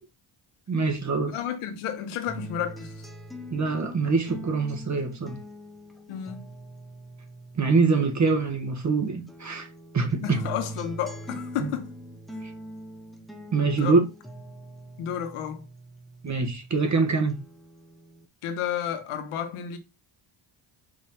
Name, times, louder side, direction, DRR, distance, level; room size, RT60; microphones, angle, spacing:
voice 1, 0.7-1.4 3.5-5.4 7.5-9.7 9.9-10.4 11.6-11.7 12.4-12.5 13.5-14.1 16.2-17.4, right 4 dB, 35° right, 1.5 m, -24 dB
voice 2, 1.3-3.0 6.1-6.4 10.2-11.9 13.8-14.0 15.0-15.7 18.4-19.8, left 9 dB, 90° left, 1.3 m, -31 dB
sound 1, 2.3-8.9 9.3-16.9 17.3-18.3, right 1 dB, ahead, 1.0 m, -43 dB
5.3 x 3.3 x 5.6 m
cardioid pair, 85°, 49 cm